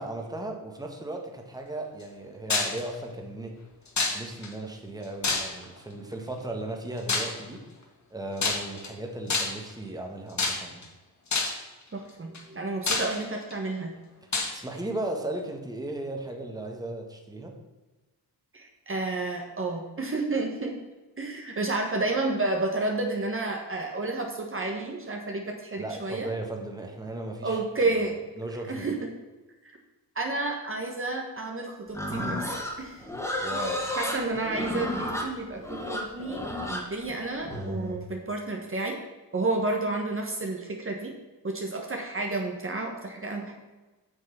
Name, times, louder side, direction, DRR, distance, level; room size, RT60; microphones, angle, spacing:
voice 1, 0.0-3.6 4.1-7.6 8.1-10.9 14.2-17.6 25.8-27.9 28.4-28.9 33.4-33.9, right 1 dB, 10° right, 2 dB, 1.7 m, -36 dB
sound 1, 2.5-2.8 4.0-4.5 5.2-5.8 7.1-7.4 8.4-8.9 9.3-9.7 10.4-10.8 11.3-11.7 12.3-12.4 12.9-13.5 14.3-14.5, left 3 dB, 45° left, 2.0 m, -27 dB
voice 2, 11.9-14.0 18.5-20.7 21.2-26.3 27.4-28.1 28.7-29.0 29.6-29.8 30.1-32.4 32.8-32.9 34.0-39.0 39.3-41.1 41.4-43.5, right 2 dB, 30° right, 1 dB, 1.5 m, -31 dB
Livestock farm animals working animals, 31.9-38.0, left 1 dB, 5° left, 2.2 m, -32 dB
8.5 x 6.5 x 5.9 m, 1.2 s
cardioid pair, 90°, 41 cm